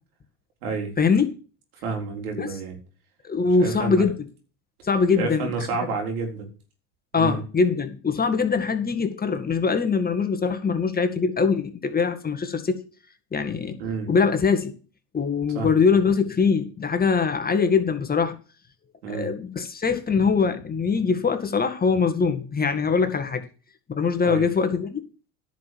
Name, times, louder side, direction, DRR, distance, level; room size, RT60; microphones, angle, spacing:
voice 1, 0.6-0.9 1.8-2.8 3.6-4.0 5.2-6.5 7.1-7.4 13.8-14.1 15.5-15.7 19.0-19.3 24.2-24.5, right 4 dB, 80° right, 4.2 m, -29 dB
voice 2, 3.3-4.1 4.8-5.7 7.1-12.8 13.3-13.8 14.1-14.7 15.1-18.3 19.1-23.4 23.9-25.0, left 5 dB, 20° left, 1.8 m, -22 dB
10.5 x 6.1 x 7.7 m
hypercardioid pair, 95°, 43 cm